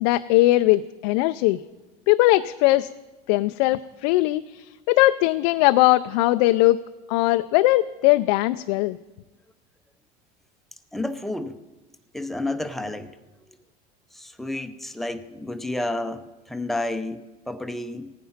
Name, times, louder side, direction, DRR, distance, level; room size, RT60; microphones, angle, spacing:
voice 1, 0.0-1.6 2.1-2.9 3.3-6.8 7.1-9.0, left 18 dB, 80° left, 10 dB, 0.4 m, -20 dB
voice 2, 10.9-11.6 12.1-13.2 14.1-18.1, left 2 dB, ahead, 8 dB, 0.6 m, -30 dB
15.5 x 9.4 x 5.8 m, 1.2 s
supercardioid pair, 135°, 21 cm